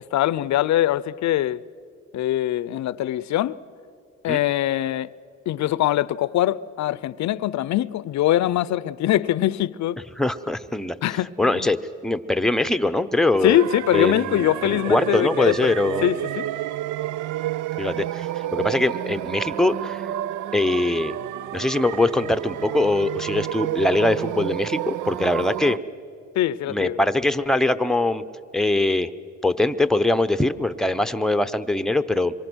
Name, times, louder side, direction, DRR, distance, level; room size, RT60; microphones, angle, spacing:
voice 1, 0.1-1.6 2.1-3.6 4.2-5.1 5.5-10.0 11.0-11.7 13.4-15.7 16.0-16.5 26.4-27.0, left 13 dB, 65° left, 0.6 m, -23 dB
voice 2, 10.2-10.9 11.4-11.8 12.0-13.6 13.9-16.1 17.8-20.0 20.5-21.1 21.5-25.8 26.7-28.2 28.5-29.1 29.4-32.3, left 2 dB, ahead, 0.8 m, -22 dB
sound 1, 13.5-25.8, right 13 dB, 75° right, 0.5 m, -30 dB
26.0 x 23.5 x 6.3 m
cardioid pair, 90°, 30 cm